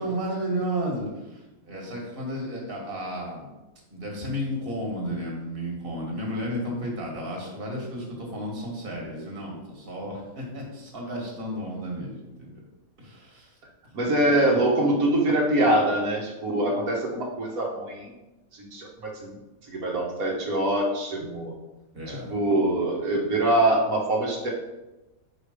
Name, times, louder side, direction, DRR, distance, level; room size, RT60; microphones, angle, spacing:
voice 1, 0.0-3.5 3.9-12.5 13.0-13.5 21.9-22.4, equal, 40° right, -1 dB, 1.8 m, -33 dB
voice 2, 13.9-18.1 18.5-19.3 19.7-21.5 22.1-24.5, right 1 dB, 90° right, -2 dB, 1.7 m, -24 dB
5.2 x 5.0 x 4.9 m, 1.0 s
omnidirectional pair, 1.4 m